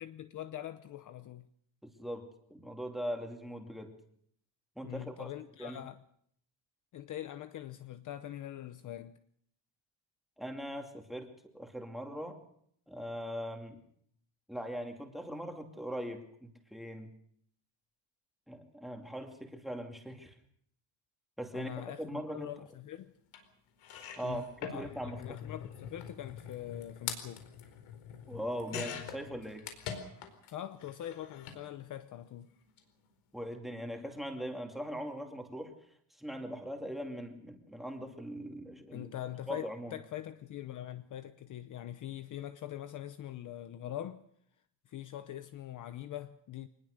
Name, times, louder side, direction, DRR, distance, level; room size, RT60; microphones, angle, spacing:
voice 1, 0.0-1.5 4.8-6.0 6.9-9.2 21.5-23.1 24.2-24.4 24.7-27.5 30.5-32.5 38.9-44.2 44.9-46.7, left 12 dB, 40° left, 0.8 m, -43 dB
voice 2, 1.8-3.9 4.8-5.3 5.6-5.8 10.4-11.3 11.5-12.4 12.9-13.8 14.5-17.1 18.5-20.3 21.4-21.7 22.0-22.5 24.1-25.2 28.3-29.7 33.3-35.7 36.2-39.1 39.5-40.0, equal, ahead, 2.5 m, -40 dB
sound 1, 23.3-23.4 23.8-30.5 30.8-31.6 32.6-32.8 33.1-33.2, left 8 dB, 90° left, 4.6 m, -44 dB
24.5 x 20.0 x 6.6 m
cardioid pair, 175°, 47 cm